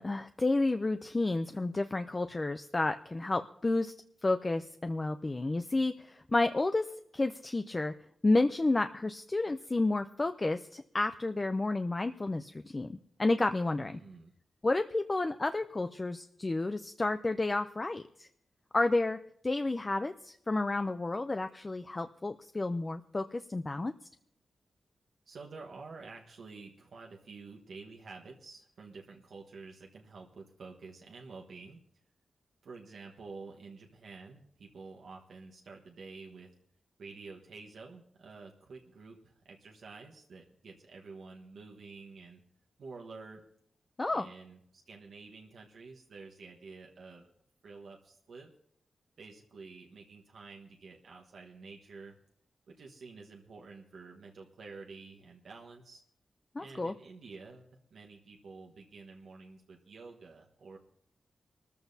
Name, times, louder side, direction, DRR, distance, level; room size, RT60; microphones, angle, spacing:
voice 1, 0.0-3.9 4.2-6.9 7.1-7.9 8.2-14.0 14.6-18.3 18.7-19.2 19.4-23.9 44.0-44.3 56.5-56.9, left 2 dB, 30° left, 8 dB, 0.5 m, -31 dB
voice 2, 13.8-14.3 25.3-31.8 32.6-36.5 37.0-42.4 42.8-43.4 44.1-47.3 47.6-48.5 49.2-52.1 52.7-56.0 56.6-60.8, right 4 dB, 90° right, -1 dB, 1.3 m, -49 dB
24.0 x 14.0 x 2.7 m, 0.69 s
wide cardioid pair, 90°, 0 cm